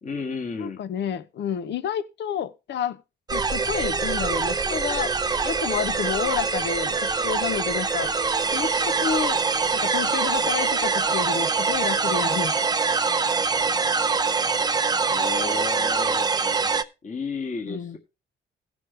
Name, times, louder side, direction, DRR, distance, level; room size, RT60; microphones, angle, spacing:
voice 1, 0.0-0.8 15.1-16.3 17.0-18.0, left 5 dB, 40° left, 1.8 m, -32 dB
voice 2, 0.6-3.0 3.3-5.1 5.4-8.1 8.5-9.4 9.7-12.6 17.7-18.0, left 8 dB, 60° left, 0.7 m, -30 dB
sound 1, 3.3-16.8, right 4 dB, 20° right, 0.6 m, -24 dB
16.0 x 6.3 x 3.2 m
cardioid pair, 90°, 20 cm